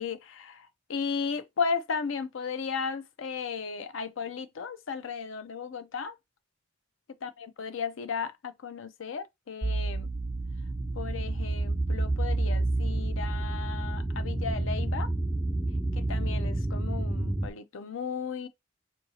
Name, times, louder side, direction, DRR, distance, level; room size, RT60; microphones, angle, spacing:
voice 1, 0.0-6.1 7.2-10.1 10.9-15.1 15.9-18.5, left 5 dB, 75° left, 0.5 m, -35 dB
sound 1, 9.6-17.5, right 2 dB, 10° right, 0.3 m, -29 dB
4.6 x 2.6 x 2.8 m
head